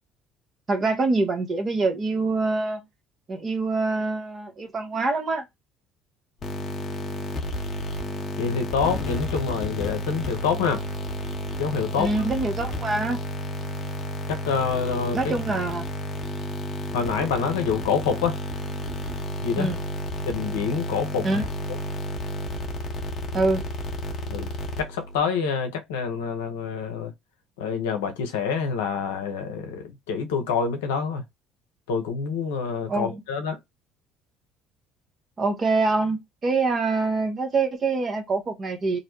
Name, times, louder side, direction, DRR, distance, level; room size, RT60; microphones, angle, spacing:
voice 1, 0.7-2.8 3.3-5.4 12.0-13.2 15.1-15.9 19.6-19.8 21.2-21.5 23.3-23.7 32.9-33.2 35.4-39.0, right 3 dB, 40° right, 0.9 m, -25 dB
sound 1, 6.4-25.2, left 1 dB, 45° left, 0.8 m, -31 dB
voice 2, 8.4-10.8 11.6-12.1 14.3-15.2 16.9-18.4 19.4-19.7 20.3-21.3 24.3-24.5 24.8-27.1 27.6-31.2 31.9-33.6, left 6 dB, 80° left, 0.6 m, -26 dB
2.5 x 2.1 x 2.8 m
hypercardioid pair, 60°, 0 cm